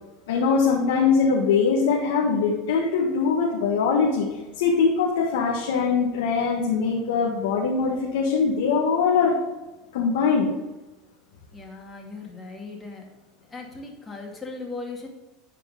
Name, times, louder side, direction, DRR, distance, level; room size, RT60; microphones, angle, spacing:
voice 1, 0.3-4.3 4.5-9.4 9.9-10.5, left 5 dB, 80° left, -2 dB, 1.4 m, -22 dB
voice 2, 11.5-13.1 13.5-15.1, left 3 dB, 20° left, 0 dB, 2.3 m, -38 dB
10.5 x 4.6 x 5.7 m, 1.1 s
supercardioid pair, 100°, 0 cm